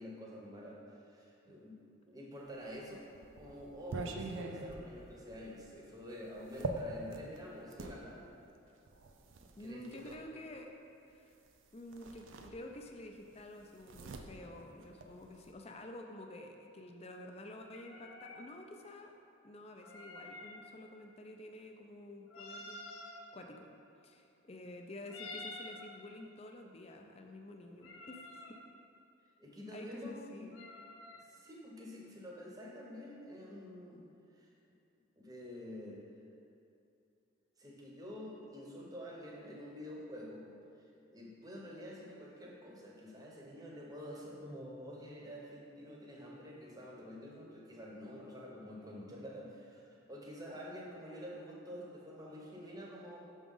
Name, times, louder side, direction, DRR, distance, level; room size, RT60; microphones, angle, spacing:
voice 1, 0.0-1.8 2.1-3.1 3.4-8.3 9.6-10.4 29.4-30.5 31.2-34.1 34.3-34.5 35.2-36.1 37.6-40.5 41.1-53.2, equal, 20° right, -3 dB, 0.8 m, -48 dB
sound 1, 2.6-8.0 8.9-10.2 11.4-11.6 11.9-13.0 13.3-15.5, right 3 dB, 75° right, 0.5 m, -44 dB
voice 2, 9.6-10.7 11.1-11.4 11.7-19.1 19.4-23.7 24.0-28.4 29.7-30.6, left 1 dB, 30° left, 3 dB, 0.4 m, -50 dB
sound 2, 17.7-18.5 19.8-20.6 22.3-23.2 25.1-25.9 27.8-28.6 30.5-31.3, left 2 dB, 85° left, 0.6 m, -49 dB
6.0 x 3.6 x 5.4 m, 2.6 s
head